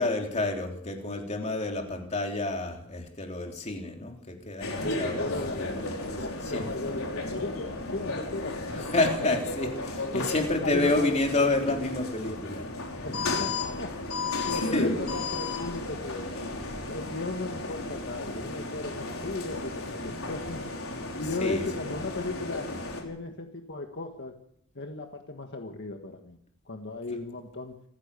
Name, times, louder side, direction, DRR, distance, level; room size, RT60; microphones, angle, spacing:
voice 1, 0.0-5.7 6.1-6.2 6.4-6.8 8.8-12.6 14.5-14.9 21.4-21.6 27.1-27.2, left 2 dB, 30° left, 3 dB, 3.4 m, -29 dB
sound 1, 4.6-23.0, left 2 dB, 70° left, 5.3 m, -34 dB
voice 2, 4.8-5.8 6.2-8.9 10.1-10.3 10.6-11.1 13.0-14.2 14.5-16.3 16.6-20.6 21.2-22.7 23.0-24.4 24.8-26.4 26.7-27.7, left 3 dB, 50° left, 4 dB, 1.7 m, -36 dB
28.0 x 15.0 x 7.0 m, 0.71 s
head